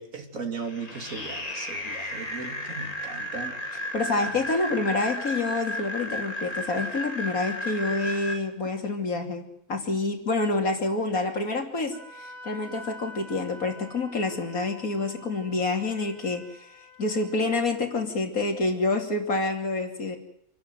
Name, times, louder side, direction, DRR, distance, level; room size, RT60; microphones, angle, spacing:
voice 1, 0.0-3.6 4.2-4.5, right 4 dB, 65° right, 5 dB, 3.0 m, -37 dB
sound 1, 0.6-8.3, left 1 dB, 25° left, 2.6 m, -34 dB
voice 2, 3.9-9.4 9.7-16.7 17.0-20.2, left 3 dB, 75° left, 3 dB, 3.2 m, -27 dB
Wind instrument woodwind instrument, 11.9-17.7, left 1 dB, ahead, 7.8 m, -47 dB
27.5 x 12.0 x 9.3 m, 0.77 s
omnidirectional pair, 1.5 m